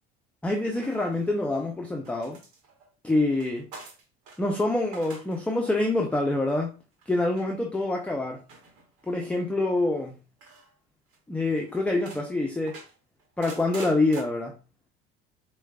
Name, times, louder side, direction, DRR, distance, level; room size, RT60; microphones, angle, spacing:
voice 1, 0.4-2.4 3.0-3.7 4.4-6.8 7.1-8.4 9.0-10.2 11.3-12.8 13.4-14.6, left 2 dB, 5° left, 1 dB, 0.5 m, -26 dB
sound 1, 0.7-1.6 2.0-4.4 4.8-5.4 5.7-6.1 7.0-7.4 8.5-9.2 10.4-10.7 11.1-11.2 11.6-12.2 12.7-14.2, right 4 dB, 65° right, 1.2 m, -46 dB
4.5 x 2.3 x 2.2 m, 0.33 s
hypercardioid pair, 75°, 32 cm